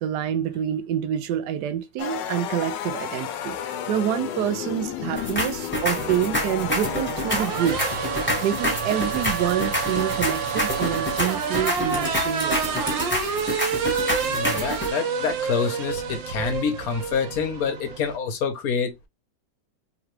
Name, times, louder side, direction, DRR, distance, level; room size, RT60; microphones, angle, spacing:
voice 1, 0.0-7.8 8.4-12.8, right 10 dB, 70° right, 1.1 m, -27 dB
sound 1, 2.0-10.2, left 9 dB, 75° left, 1.2 m, -33 dB
sound 2, 5.1-14.9, left 1 dB, 5° left, 1.7 m, -28 dB
sound 3, 5.9-18.2, right 5 dB, 90° right, 1.5 m, -29 dB
voice 2, 14.2-18.9, left 6 dB, 60° left, 1.2 m, -27 dB
3.7 x 3.1 x 3.0 m
omnidirectional pair, 2.0 m